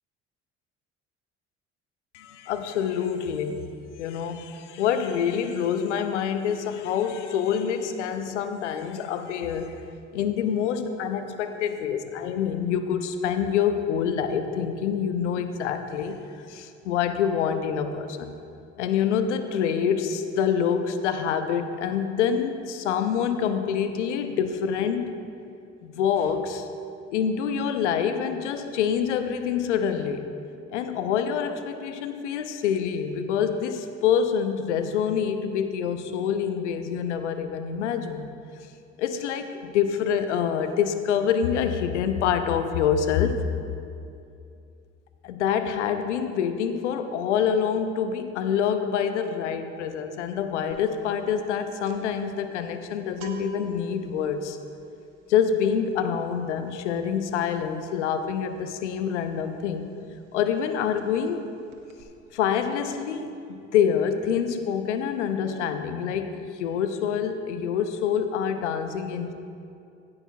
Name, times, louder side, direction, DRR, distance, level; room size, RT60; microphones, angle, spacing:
voice 1, 2.1-3.6 4.0-9.8 10.1-16.2 16.5-18.3 18.8-25.2 25.8-26.7 27.1-30.3 30.7-38.3 39.0-43.5 45.2-54.6 55.3-59.9 60.3-61.5 62.3-69.3, left 7 dB, 85° left, 9 dB, 0.6 m, -26 dB
sound 1, 50.7-51.0 51.2-59.8 60.1-60.3 60.6-61.4 61.7-62.0, right 4 dB, 75° right, 0.9 m, -45 dB
15.5 x 8.8 x 2.3 m, 2.5 s
hypercardioid pair, 55°, 34 cm